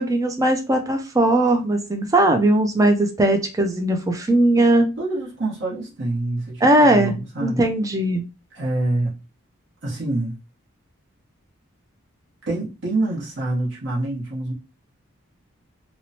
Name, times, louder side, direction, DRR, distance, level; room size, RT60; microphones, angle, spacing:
voice 1, 0.0-4.9 6.6-8.2, right 1 dB, 15° right, 0.4 m, -19 dB
voice 2, 5.0-7.6 8.5-9.1 9.8-10.4 12.5-14.5, right 2 dB, 55° right, 0.9 m, -26 dB
3.0 x 2.0 x 2.7 m
head